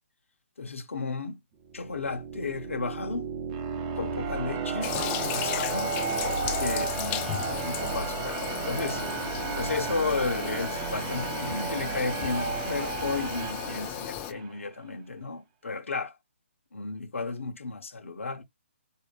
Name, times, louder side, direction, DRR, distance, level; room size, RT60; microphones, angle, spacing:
voice 1, 0.6-1.4 1.7-3.3 4.0-5.9 6.6-9.0 9.6-16.1 16.7-18.4, left 4 dB, 80° left, 0.9 m, -33 dB
sound 1, 1.7-14.6, right 5 dB, 30° right, 0.7 m, -33 dB
Toilet flush, 4.8-14.3, left 13 dB, 20° left, 0.4 m, -35 dB
4.3 x 2.7 x 3.3 m
hypercardioid pair, 150°, 7 cm